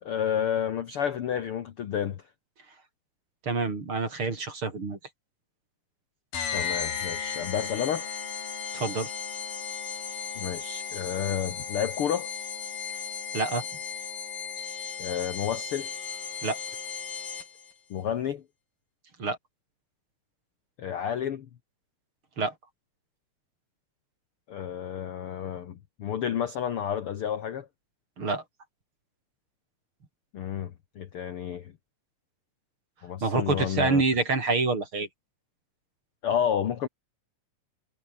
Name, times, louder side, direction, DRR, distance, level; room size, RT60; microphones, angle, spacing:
voice 1, 0.0-2.2 6.5-8.1 10.4-12.3 15.0-15.9 17.9-18.4 20.8-21.5 24.5-27.7 30.3-31.7 33.0-34.0 36.2-36.9, left 9 dB, 55° left, 1.6 m, -30 dB
voice 2, 3.4-5.0 8.7-9.1 13.3-13.6 16.4-16.6 19.2-19.4 22.4-22.5 28.2-28.4 33.2-35.1, right 3 dB, 40° right, 5.1 m, -27 dB
sound 1, 6.3-17.7, left 7 dB, 85° left, 5.2 m, -35 dB
omnidirectional pair, 3.8 m